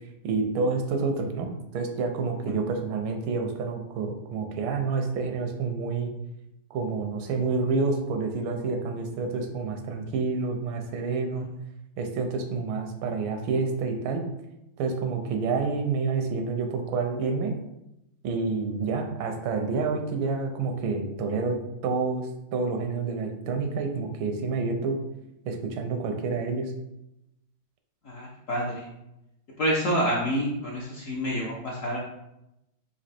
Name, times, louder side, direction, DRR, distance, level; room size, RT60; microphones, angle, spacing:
voice 1, 0.2-6.1 6.7-11.5 12.0-14.2 14.8-17.5 18.2-25.0 25.4-26.7, right 4 dB, 85° right, 4 dB, 1.4 m, -28 dB
voice 2, 28.0-28.9 29.6-32.0, equal, 65° left, -3 dB, 0.8 m, -28 dB
4.3 x 2.7 x 4.2 m, 0.88 s
omnidirectional pair, 2.1 m